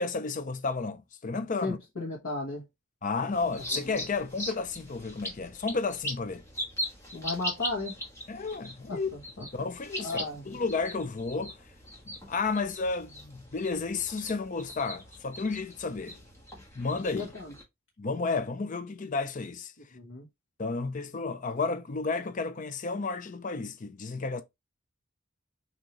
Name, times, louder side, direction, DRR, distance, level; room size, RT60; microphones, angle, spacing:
voice 1, 0.0-1.8 3.0-6.4 8.3-9.1 9.5-10.2 10.5-11.5 12.0-16.2 16.8-17.3 18.0-19.7 20.6-24.4, left 4 dB, 35° left, 0.5 m, -32 dB
voice 2, 1.6-2.6 3.5-3.6 3.9-4.0 7.1-8.0 8.9-9.5 10.0-10.6 17.1-17.5 19.9-20.3, left 2 dB, 70° left, 1.3 m, -35 dB
sound 1, 3.3-17.6, left 1 dB, 15° left, 1.4 m, -40 dB
6.2 x 2.8 x 3.0 m
head